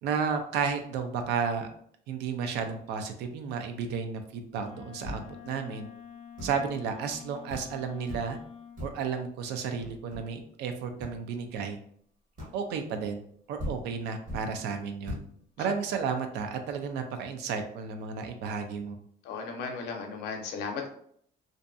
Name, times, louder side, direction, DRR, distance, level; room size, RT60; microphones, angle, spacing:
voice 1, 0.0-1.7 2.1-5.9 6.4-8.4 8.8-11.8 12.5-13.2 13.5-15.2 15.6-19.0, right 6 dB, 85° right, 6 dB, 0.4 m, -32 dB
Wind instrument woodwind instrument, 4.5-8.9, left 8 dB, 35° left, 0.4 m, -48 dB
sound 1, 5.0-5.5 6.4-6.7 7.1-7.2 7.5-7.8 8.1-8.4 8.8-9.1 9.8-10.4 11.0-11.2 12.4-12.7 13.3-13.4 13.6-14.6 15.1-15.4, left 1 dB, 50° right, 1.3 m, -40 dB
voice 2, 19.2-20.9, left 5 dB, 90° left, 3 dB, 0.6 m, -35 dB
2.6 x 2.2 x 2.5 m, 0.64 s
cardioid pair, 110°, 17 cm